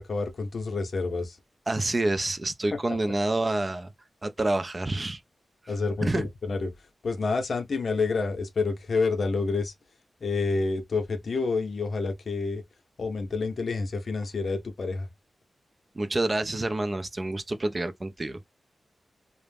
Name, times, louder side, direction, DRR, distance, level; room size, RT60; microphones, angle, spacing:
voice 1, 0.0-1.4 2.7-2.8 5.7-6.7 7.0-9.7 10.2-12.6 13.0-15.1, left 4 dB, 65° left, 0.6 m, -28 dB
voice 2, 1.7-3.9 4.2-5.2 6.0-6.3 16.0-18.4, right 2 dB, 35° right, 0.4 m, -28 dB
2.4 x 2.0 x 3.3 m
cardioid pair, 60°, 0 cm